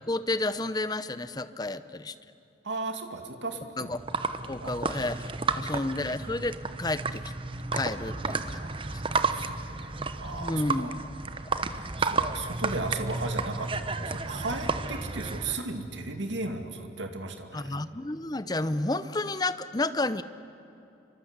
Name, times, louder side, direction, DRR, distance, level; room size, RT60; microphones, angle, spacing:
voice 1, 0.1-2.1 3.8-4.0 4.5-7.3 7.7-8.6 8.9-9.0 10.4-11.2 17.5-20.2, left 2 dB, 20° left, 13 dB, 0.8 m, -31 dB
voice 2, 2.6-3.9 4.6-4.8 5.5-5.8 8.3-10.9 11.6-17.8, right 3 dB, 80° right, 5 dB, 2.4 m, -36 dB
sound 1, 3.9-15.6, right 3 dB, 30° right, 0.9 m, -32 dB
29.0 x 24.5 x 8.1 m, 2.7 s
head